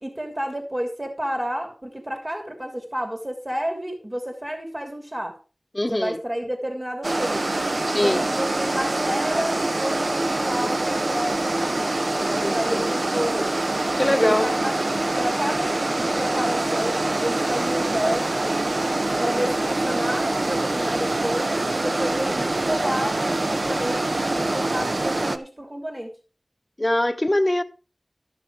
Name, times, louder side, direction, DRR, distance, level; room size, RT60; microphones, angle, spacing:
voice 1, 0.0-5.3 5.9-7.5 8.0-13.6 14.1-14.8 15.2-18.5 19.2-26.1, equal, 35° right, 3.0 m, -30 dB
voice 2, 5.7-6.2 7.9-8.3 12.4-13.0 14.0-14.5 26.8-27.6, left 1 dB, 25° left, 1.0 m, -23 dB
sound 1, 7.0-25.4, right 2 dB, 65° right, 0.8 m, -25 dB
13.0 x 6.8 x 4.7 m
wide cardioid pair, 50°, 0 cm